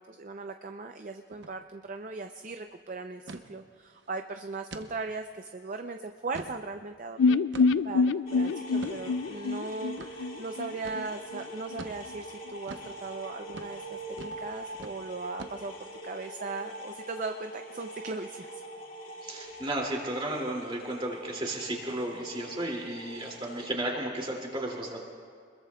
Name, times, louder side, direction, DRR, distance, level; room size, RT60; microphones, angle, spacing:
voice 1, 0.0-18.6, right 3 dB, 45° right, 6 dB, 0.5 m, -38 dB
sound 1, 1.3-1.6 1.9-2.0 2.3-2.6 3.3-3.5 4.0-4.1 4.7-4.9 5.4-5.5 6.1-6.6 7.5-7.9 8.8-9.0 10.0-10.1 10.8-11.0 11.8-12.0 12.7-12.9 13.5-13.7 14.2-14.4 14.7-15.0 15.4-15.9, right 3 dB, 80° right, 0.9 m, -44 dB
sound 2, 7.2-11.1 11.3-11.4 11.7-11.8, left 4 dB, 85° left, 0.3 m, -26 dB
sound 3, 8.3-23.7, right 1 dB, 50° left, 2.5 m, -44 dB
voice 2, 19.2-25.0, right 1 dB, 30° right, -1 dB, 2.5 m, -33 dB
26.5 x 21.5 x 2.3 m, 2.1 s
head